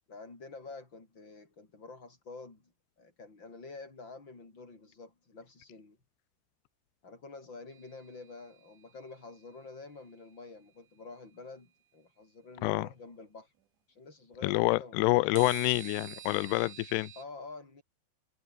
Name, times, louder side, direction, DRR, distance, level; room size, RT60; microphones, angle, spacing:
voice 1, 0.1-2.7 3.0-6.0 7.0-13.5 13.9-15.7 17.2-17.8, left 3 dB, 25° left, 6.2 m, -48 dB
sound 1, 7.7-9.0 15.4-17.2, right 12 dB, 70° right, 1.9 m, -48 dB
voice 2, 14.4-17.1, left 21 dB, 90° left, 2.4 m, -27 dB
omnidirectional pair, 5.4 m